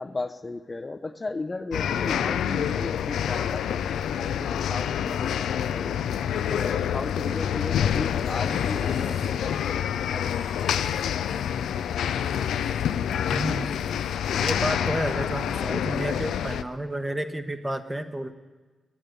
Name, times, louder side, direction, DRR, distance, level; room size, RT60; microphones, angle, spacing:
voice 1, 0.0-6.0 6.5-11.3, left 3 dB, 35° left, 9 dB, 0.6 m, -36 dB
sound 1, 1.7-16.6, left 9 dB, 80° left, 0.3 m, -27 dB
sound 2, 8.2-14.7 14.9-16.1, right 1 dB, 65° right, 4.5 m, -54 dB
voice 2, 13.3-13.7 14.3-18.3, right 1 dB, 20° right, 8 dB, 1.1 m, -30 dB
8.8 x 8.7 x 9.5 m, 1.3 s
supercardioid pair, 45°, 0 cm